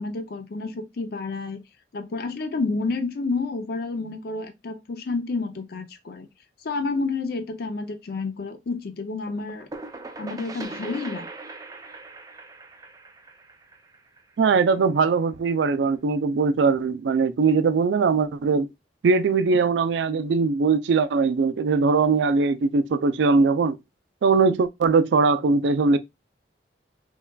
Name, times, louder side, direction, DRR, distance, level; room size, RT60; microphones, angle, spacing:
voice 1, 0.0-1.6 1.9-6.3 6.6-9.7 10.2-11.3, left 3 dB, 60° left, 0.5 m, -30 dB
sound 1, 9.3-14.8, right 3 dB, 20° right, 0.4 m, -40 dB
voice 2, 14.4-18.7 19.0-23.8 24.2-26.0, right 4 dB, 85° right, 0.4 m, -21 dB
5.4 x 2.3 x 2.2 m
head